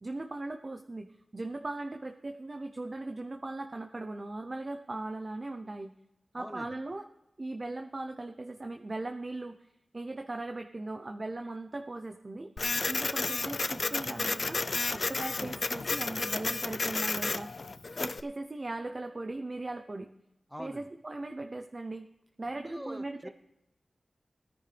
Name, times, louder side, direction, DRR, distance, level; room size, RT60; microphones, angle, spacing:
voice 1, 0.0-5.9 6.3-7.1 7.4-9.7 9.9-12.5 12.9-14.6 14.9-17.5 18.0-20.1 20.6-22.1 22.4-23.3, right 2 dB, 45° right, 6 dB, 0.7 m, -38 dB
voice 2, 6.4-6.7 20.5-20.9 22.6-23.3, equal, ahead, 10 dB, 1.0 m, -43 dB
Printer, 12.6-18.2, left 3 dB, 60° left, 0.5 m, -32 dB
17.5 x 9.9 x 3.4 m, 0.87 s
wide cardioid pair, 60°, 0 cm